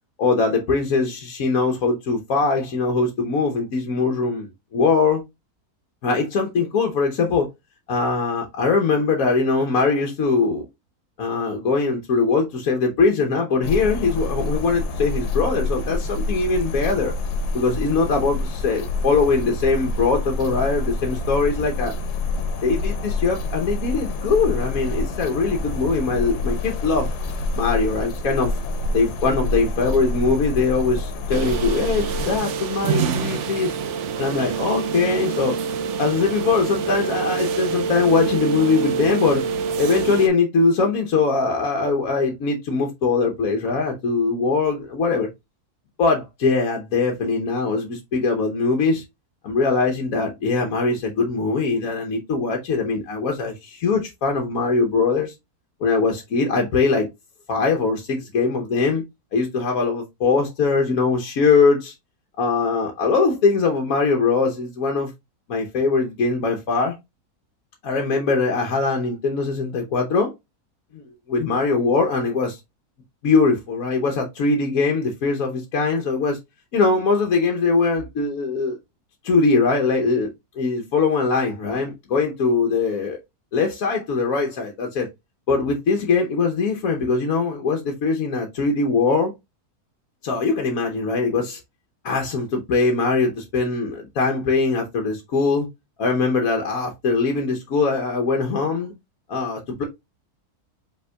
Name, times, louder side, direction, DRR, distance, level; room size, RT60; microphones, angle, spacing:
voice 1, 0.2-5.2 6.0-7.5 7.9-10.6 11.2-17.1 17.5-21.9 22.6-27.1 27.5-28.6 28.9-33.8 34.2-35.5 36.0-39.4 39.8-45.3 46.0-49.0 49.4-55.3 55.8-57.1 57.5-59.0 59.3-61.9 62.4-65.1 65.5-67.0 67.8-70.3 70.9-71.0 71.3-72.6 73.2-76.4 76.7-78.8 79.2-80.3 80.6-83.2 83.5-85.1 85.5-89.3 90.2-91.6 92.0-95.7 96.0-98.9 99.3-99.8, left 4 dB, 65° left, 1.2 m, -21 dB
sound 1, 13.6-32.4, left 2 dB, 85° left, 1.3 m, -27 dB
sound 2, 31.3-40.3, right 6 dB, 65° right, 0.8 m, -26 dB
5.4 x 3.5 x 2.2 m
omnidirectional pair, 1.6 m